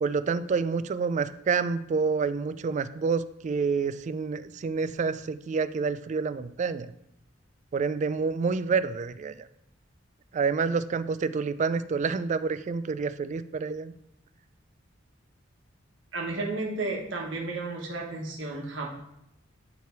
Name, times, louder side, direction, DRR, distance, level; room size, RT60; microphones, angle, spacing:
voice 1, 0.0-6.9 7.7-9.3 10.3-13.9, right 5 dB, 40° right, 13 dB, 0.3 m, -28 dB
voice 2, 16.1-19.0, right 2 dB, 70° right, -2 dB, 1.4 m, -33 dB
9.3 x 3.3 x 4.6 m, 0.79 s
head